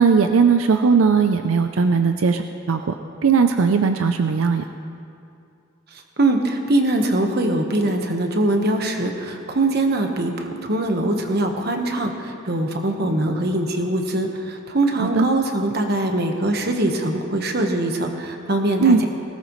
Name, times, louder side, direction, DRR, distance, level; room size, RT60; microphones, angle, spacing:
voice 1, 0.0-4.6 15.0-15.3 18.8-19.0, right 5 dB, 85° right, 7 dB, 0.5 m, -18 dB
voice 2, 6.2-19.1, right 1 dB, 50° right, 3 dB, 1.3 m, -22 dB
19.5 x 17.5 x 3.2 m, 2.5 s
head